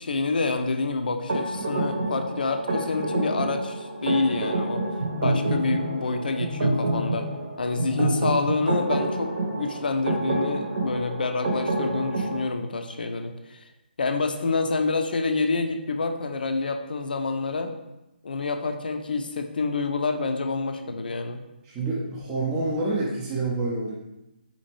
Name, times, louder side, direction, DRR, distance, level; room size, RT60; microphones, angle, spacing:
voice 1, 0.0-4.9 5.2-7.3 7.6-13.6 14.0-17.7 18.2-21.4, left 3 dB, 60° left, 6 dB, 0.4 m, -27 dB
sound 1, 1.3-12.4, right 2 dB, 45° right, 0.8 m, -28 dB
voice 2, 21.6-23.9, right 2 dB, 15° right, -5 dB, 0.5 m, -27 dB
4.3 x 2.8 x 3.0 m, 0.94 s
figure-of-eight pair, 145°, 6 cm